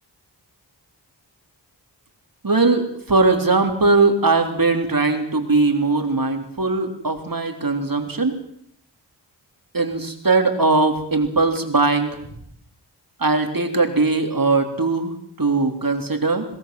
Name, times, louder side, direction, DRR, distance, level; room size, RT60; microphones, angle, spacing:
voice 1, 2.4-8.4 9.7-12.2 13.2-15.1 15.4-16.4, right 3 dB, 50° right, 5 dB, 3.7 m, -20 dB
23.0 x 18.5 x 7.8 m, 0.69 s
wide cardioid pair, 55°, 44 cm